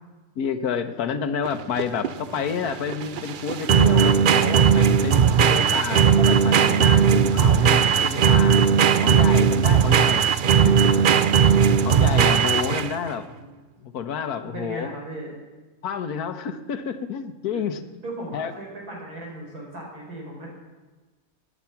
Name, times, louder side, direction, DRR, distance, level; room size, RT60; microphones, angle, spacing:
voice 1, 0.4-8.6 9.0-10.3 10.6-11.1 11.8-13.4 13.8-14.9 15.8-18.0 18.3-18.5, left 7 dB, 85° left, 9 dB, 1.5 m, -29 dB
sound 1, 1.4-13.1, right 7 dB, 65° right, 0.5 m, -18 dB
voice 2, 5.2-5.9 13.0-13.5 14.4-15.3 17.5-17.6 18.0-20.5, right 1 dB, 85° right, -3 dB, 5.1 m, -38 dB
17.5 x 11.0 x 5.8 m, 1.2 s
omnidirectional pair, 1.6 m